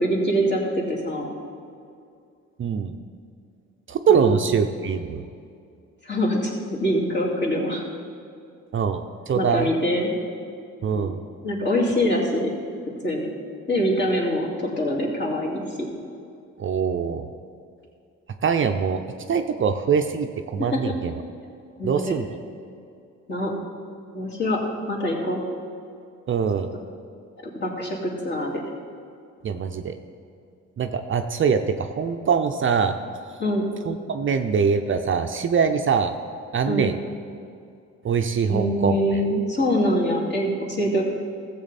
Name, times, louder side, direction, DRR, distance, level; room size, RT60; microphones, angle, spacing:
voice 1, 0.0-1.3 4.1-4.4 6.0-7.8 9.3-10.1 10.9-11.1 11.4-12.5 13.0-13.3 13.7-14.5 14.8-15.9 20.6-20.9 21.8-22.2 23.3-23.5 24.1-24.6 24.9-25.4 27.4-28.6 33.4-33.6 36.6-36.9 38.5-41.0, equal, 35° left, -3 dB, 2.6 m, -24 dB
voice 2, 2.6-3.0 3.9-5.2 8.7-9.7 10.8-11.2 16.6-17.2 18.4-19.0 19.3-21.1 21.8-22.3 26.3-26.7 29.4-29.9 30.8-33.0 33.8-36.1 36.5-37.0 38.0-39.0, right 6 dB, 40° right, 7 dB, 0.6 m, -23 dB
14.5 x 7.6 x 4.1 m, 2.5 s
cardioid pair, 90°, 30 cm